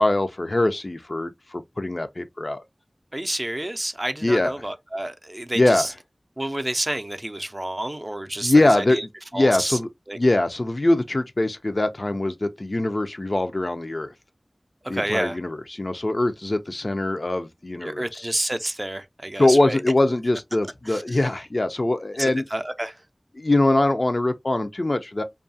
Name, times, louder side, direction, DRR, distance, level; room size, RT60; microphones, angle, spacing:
voice 1, 0.0-2.6 4.2-4.5 5.5-5.8 8.4-9.0 9.3-9.9 10.2-14.1 14.9-18.3 19.4-22.4 23.4-25.2, left 2 dB, 60° left, 0.4 m, -22 dB
voice 2, 3.1-5.9 6.4-9.0 9.3-9.8 10.1-10.2 14.8-15.4 17.8-19.8 20.9-21.0 22.2-23.0, right 1 dB, 35° right, 0.4 m, -29 dB
2.6 x 2.3 x 2.5 m
wide cardioid pair, 40°, 0 cm